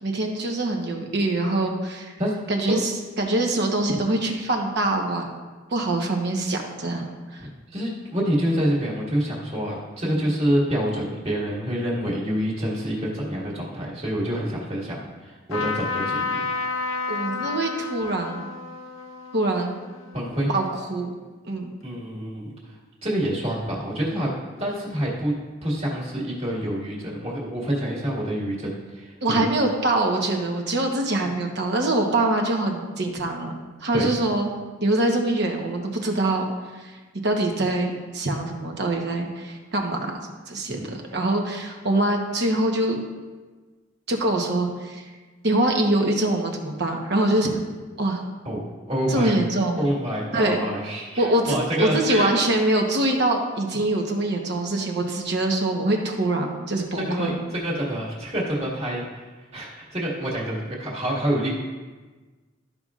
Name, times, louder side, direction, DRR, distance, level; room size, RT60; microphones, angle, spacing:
voice 1, 0.0-2.1 2.5-2.9 3.2-5.3 5.7-7.5 10.0-10.2 17.1-18.5 19.3-19.8 20.5-21.1 21.5-21.7 29.2-33.5 33.8-34.5 34.8-36.5 36.7-37.0 37.2-40.2 40.5-43.0 44.1-45.0 45.4-47.6 48.0-48.2 49.1-49.8 50.3-50.6 51.2-57.3, right 2 dB, 55° right, 2 dB, 1.1 m, -24 dB
voice 2, 7.4-16.4 16.8-17.0 20.1-20.5 21.8-22.5 23.0-24.3 24.6-25.3 25.6-29.4 33.9-34.1 40.7-40.9 48.5-48.6 48.9-49.3 49.7-52.4 57.1-59.2 59.5-61.5, equal, 30° right, -5 dB, 1.9 m, -27 dB
Trumpet, 15.5-21.0, left 4 dB, 80° left, 0.7 m, -31 dB
13.0 x 5.3 x 2.5 m, 1.3 s
head